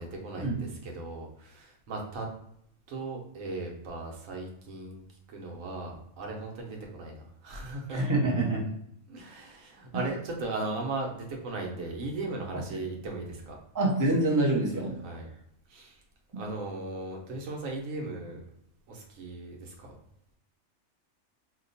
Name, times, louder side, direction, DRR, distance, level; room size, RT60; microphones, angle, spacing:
voice 1, 0.0-2.3 2.9-5.0 5.3-8.0 9.1-13.6 15.0-15.3 15.7-16.0 16.4-18.4 18.9-20.0, right 2 dB, 90° right, 1 dB, 1.2 m, -37 dB
voice 2, 7.9-8.6 13.7-14.9 16.3-16.4, right 2 dB, 20° right, -3 dB, 0.6 m, -26 dB
2.8 x 2.2 x 3.9 m, 0.72 s
omnidirectional pair, 1.4 m